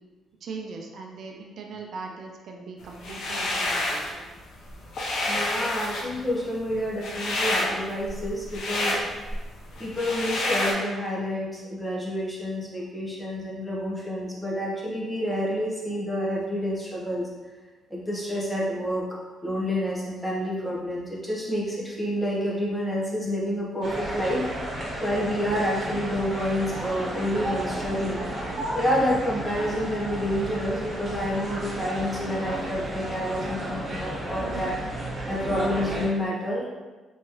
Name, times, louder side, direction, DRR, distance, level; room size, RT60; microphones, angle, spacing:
voice 1, 0.4-4.2, right 4 dB, 65° right, 1 dB, 0.4 m, -39 dB
sound 1, 3.0-4.1 4.5-10.7, left 2 dB, 65° left, 0.7 m, -28 dB
voice 2, 5.3-9.0 9.8-17.3 17.9-24.4 24.7-28.2 28.7-34.7 35.3-36.7, equal, 10° left, -4 dB, 1.0 m, -29 dB
sound 2, 23.8-36.1, right 1 dB, 45° right, 1.5 m, -33 dB
3.5 x 3.0 x 3.0 m, 1.2 s
cardioid pair, 90°, 0 cm